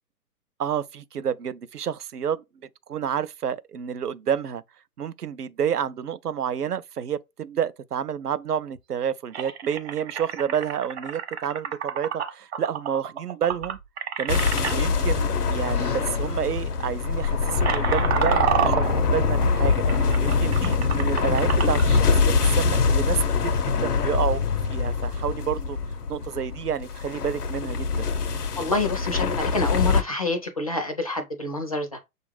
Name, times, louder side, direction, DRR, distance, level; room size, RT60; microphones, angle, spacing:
voice 1, 0.6-2.4 2.9-4.6 5.0-13.8 14.2-14.4 14.7-24.4 24.7-25.8 26.1-28.1, right 8 dB, 90° right, 0.5 m, -29 dB
sound 1, 8.8-8.9 9.3-14.8 15.8-16.0 16.3-16.5 17.1-21.9, right 8 dB, 45° right, 0.9 m, -29 dB
sound 2, 14.3-30.0, left 5 dB, 85° left, 0.7 m, -24 dB
voice 2, 28.6-32.0, left 3 dB, 25° left, 0.4 m, -27 dB
6.3 x 2.5 x 3.2 m
figure-of-eight pair, 125°, 45 cm